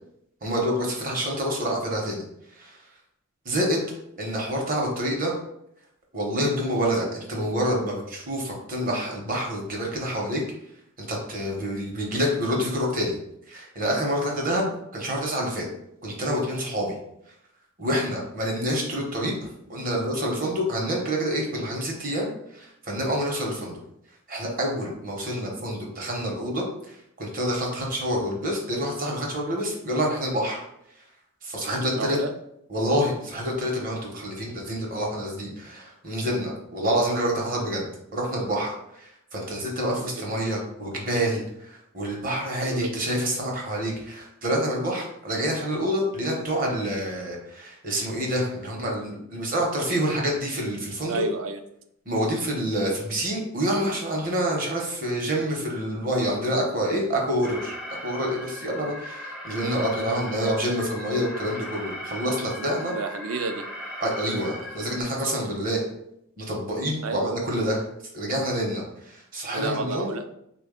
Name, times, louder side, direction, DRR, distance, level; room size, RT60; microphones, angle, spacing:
voice 1, 0.4-2.2 2.5-2.8 3.4-3.8 4.2-5.3 6.1-10.4 11.0-13.2 13.5-15.7 16.0-17.0 17.8-19.4 19.7-23.8 24.3-30.6 31.4-32.2 32.7-37.9 38.1-51.2 52.1-62.9 64.0-65.8 66.4-67.8 68.1-70.1, equal, 40° right, -1 dB, 0.8 m, -27 dB
voice 2, 31.9-32.3 39.9-40.1 42.6-42.9 51.1-51.6 62.8-63.6 67.0-67.4 69.5-70.2, right 3 dB, 75° right, 6 dB, 0.4 m, -30 dB
Alarm, 57.4-65.0, left 1 dB, 5° right, 0.4 m, -38 dB
3.4 x 2.2 x 3.6 m, 0.76 s
head